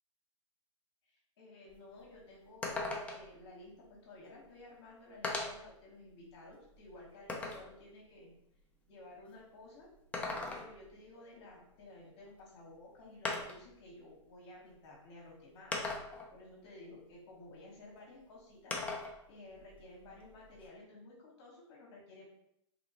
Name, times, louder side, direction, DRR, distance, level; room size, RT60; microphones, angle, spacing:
voice 1, 1.4-3.7 4.0-8.3 8.9-9.9 10.2-15.7 16.3-18.8 19.3-22.2, left 2 dB, 55° left, -3 dB, 1.1 m, -54 dB
sound 1, 1.7-1.8 2.1-2.2 2.6-3.4 4.4-4.5 5.2-5.7 6.3-7.7 9.9-10.9 12.4-12.5 13.2-13.7 14.7-14.8 15.7-16.3 18.7-19.2 19.5-20.7, left 3 dB, 10° left, 0.4 m, -39 dB
2.9 x 2.7 x 2.7 m, 0.77 s
hypercardioid pair, 125°, 16 cm